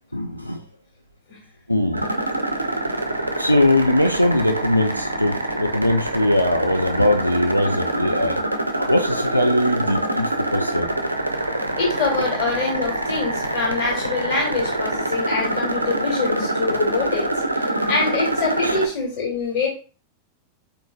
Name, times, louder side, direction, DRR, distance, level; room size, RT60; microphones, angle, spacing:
voice 1, 0.1-0.6 1.7-2.0 3.4-8.4 8.8-10.9 18.6-18.8, left 1 dB, 90° left, 0.3 m, -21 dB
sound 1, 1.9-18.9, right 1 dB, 85° right, 0.4 m, -25 dB
voice 2, 11.8-17.3 17.9-19.7, left 4 dB, 40° left, 1.8 m, -24 dB
4.2 x 2.6 x 2.2 m
figure-of-eight pair, 90°, 0 cm